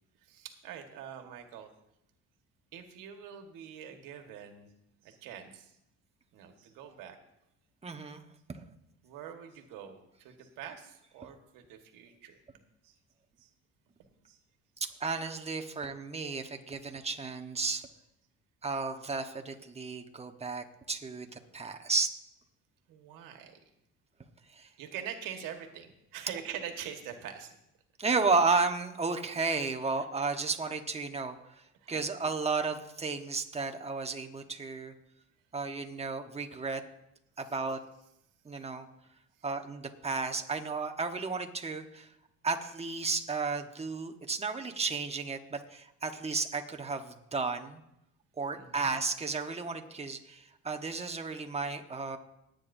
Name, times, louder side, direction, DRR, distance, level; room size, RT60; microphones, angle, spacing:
voice 1, 0.2-1.7 2.7-4.7 5.0-5.8 6.3-7.2 9.0-12.4 12.8-12.9 13.4-13.5 14.3-14.4 22.9-23.6 24.8-27.6 31.8-31.9 37.4-37.5 48.5-48.9, right 9 dB, 80° right, 5 dB, 1.6 m, -44 dB
voice 2, 7.8-8.2 8.5-8.6 14.8-17.8 18.6-22.1 24.5-24.7 28.0-31.3 31.9-34.9 35.5-36.8 37.4-37.8 38.4-38.9 39.4-42.1 42.4-47.8 48.4-52.2, right 4 dB, 20° right, 5 dB, 1.2 m, -33 dB
20.0 x 9.1 x 2.7 m, 0.82 s
cardioid pair, 95°, 32 cm